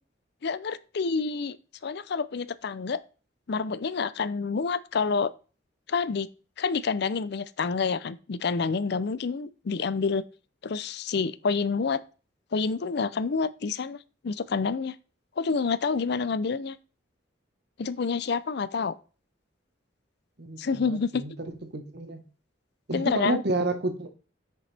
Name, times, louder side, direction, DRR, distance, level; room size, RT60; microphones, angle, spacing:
voice 1, 0.4-1.6 1.8-3.0 3.5-5.3 5.9-6.3 6.6-10.2 10.6-12.0 12.5-14.0 14.2-14.9 15.4-16.8 17.8-18.9 20.6-21.2 22.9-23.4, left 5 dB, 60° left, 0.5 m, -28 dB
voice 2, 20.4-22.2 22.9-24.1, right 2 dB, 60° right, 1.3 m, -30 dB
7.9 x 6.7 x 3.4 m
head